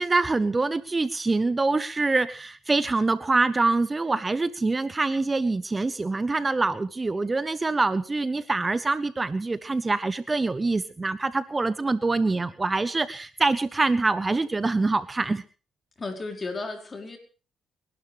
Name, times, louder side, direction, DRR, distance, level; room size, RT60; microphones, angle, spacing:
voice 1, 0.0-15.4, right 3 dB, 25° right, 15 dB, 0.8 m, -25 dB
voice 2, 16.0-17.2, left 3 dB, 30° left, 4 dB, 4.7 m, -34 dB
29.0 x 12.0 x 3.3 m, 0.36 s
cardioid pair, 90°, 0 cm